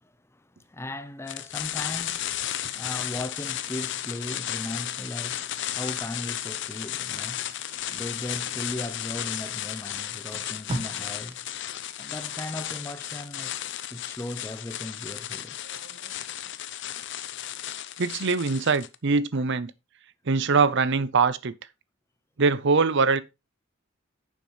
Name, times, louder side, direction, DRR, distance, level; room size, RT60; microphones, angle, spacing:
voice 1, 0.0-11.4 12.0-13.5 13.9-15.6 19.3-19.4, left 1 dB, 15° left, 0.6 m, -38 dB
sound 1, 1.3-19.0, left 12 dB, 60° left, 0.7 m, -34 dB
Packing tape duct tape, 7.3-9.0 9.7-9.8 10.1-13.1 13.5-13.7, right 1 dB, 30° right, 2.0 m, -41 dB
voice 2, 18.0-19.7 20.3-21.5 22.4-23.2, right 4 dB, 60° right, 0.7 m, -23 dB
9.6 x 7.2 x 3.1 m
head